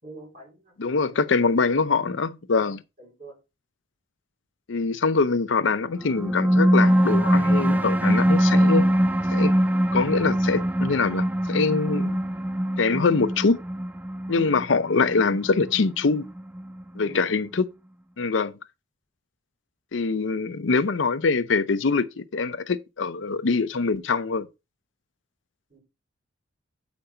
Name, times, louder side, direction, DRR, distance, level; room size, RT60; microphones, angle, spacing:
voice 1, 0.0-1.1 3.0-3.4 17.0-17.2 25.7-25.8, right 2 dB, 40° right, 3.5 m, -45 dB
voice 2, 0.8-2.8 4.7-8.9 9.3-9.5 9.9-12.2 12.8-13.6 14.3-16.3 17.0-17.6 18.2-18.5 19.9-24.5, left 4 dB, 70° left, 0.6 m, -24 dB
sound 1, 6.0-17.0, equal, 10° right, 0.4 m, -22 dB
8.0 x 5.3 x 4.2 m
head